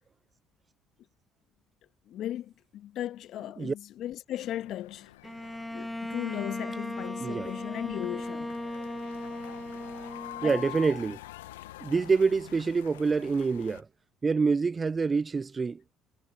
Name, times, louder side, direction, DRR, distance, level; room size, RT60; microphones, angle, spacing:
voice 1, 2.1-5.1 5.7-8.6 10.4-10.7, left 12 dB, 60° left, 1.5 m, -37 dB
sound 1, 4.4-13.8, left 18 dB, 80° left, 1.0 m, -46 dB
Bowed string instrument, 5.2-11.0, left 1 dB, 5° left, 1.8 m, -38 dB
voice 2, 7.2-7.5 10.4-11.2 11.8-13.9 14.2-15.9, right 4 dB, 30° right, 0.4 m, -26 dB
hypercardioid pair, 55°, 0 cm